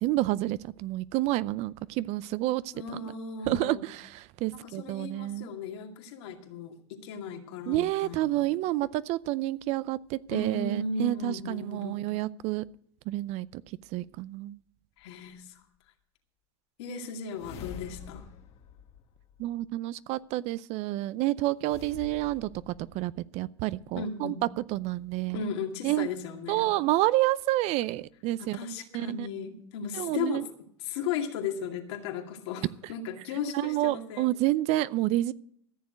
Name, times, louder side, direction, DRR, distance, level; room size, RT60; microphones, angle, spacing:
voice 1, 0.0-2.7 3.0-3.1 3.5-5.5 7.7-12.6 13.1-13.6 13.9-14.6 19.4-24.3 24.7-25.5 25.8-26.1 26.5-28.6 28.9-29.3 29.9-30.4 33.5-35.3, right 16 dB, 45° right, 18 dB, 0.5 m, -29 dB
voice 2, 2.7-3.8 4.5-8.4 10.3-12.0 15.0-15.6 16.8-18.3 24.0-24.4 25.3-26.8 28.4-30.4 30.8-34.3, left 5 dB, 70° left, 3 dB, 2.3 m, -36 dB
sound 1, 15.0-15.1 17.3-19.8 21.6-23.3, left 8 dB, 45° left, 1.4 m, -47 dB
14.0 x 7.2 x 7.7 m, 0.67 s
supercardioid pair, 125°, 15 cm